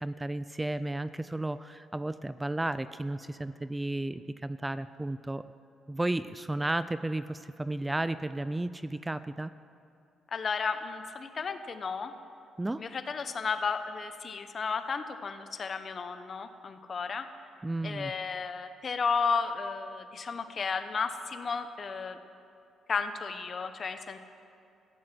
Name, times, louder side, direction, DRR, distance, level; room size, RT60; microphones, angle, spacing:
voice 1, 0.0-5.4 5.9-9.5 12.6-12.8 17.6-18.1, right 2 dB, 15° right, 14 dB, 0.3 m, -33 dB
voice 2, 10.3-12.1 12.8-17.3 17.8-22.2 22.9-24.2, left 5 dB, 45° left, 10 dB, 0.9 m, -33 dB
14.5 x 9.6 x 7.6 m, 2.6 s
cardioid pair, 90°, 0 cm